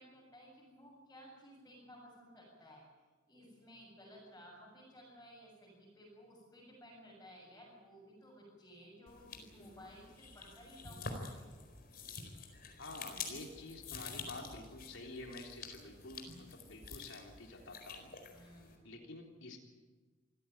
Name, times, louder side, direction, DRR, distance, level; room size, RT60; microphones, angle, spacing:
voice 1, 0.0-2.9 3.3-11.5 18.3-18.9, equal, 15° left, -6 dB, 7.6 m, -57 dB
sound 1, 9.1-18.8, left 4 dB, 50° left, 4.4 m, -48 dB
voice 2, 12.8-18.1 18.8-19.6, left 2 dB, 80° left, 1 dB, 3.6 m, -49 dB
27.0 x 16.5 x 9.3 m, 1.3 s
head